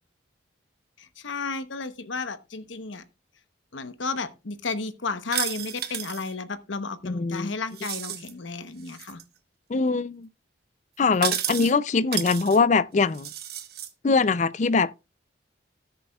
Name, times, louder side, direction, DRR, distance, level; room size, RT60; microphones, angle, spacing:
voice 1, 1.0-3.0 3.7-9.2, left 4 dB, 75° left, 0.9 m, -33 dB
sound 1, 5.3-6.3 7.7-8.3 8.9-9.2 11.1-11.7 12.1-12.6 13.1-13.9, right 11 dB, 50° right, 1.0 m, -32 dB
voice 2, 7.0-7.5 9.7-10.3 11.0-13.3 14.0-14.9, left 4 dB, 35° left, 0.4 m, -22 dB
17.5 x 6.8 x 2.3 m
head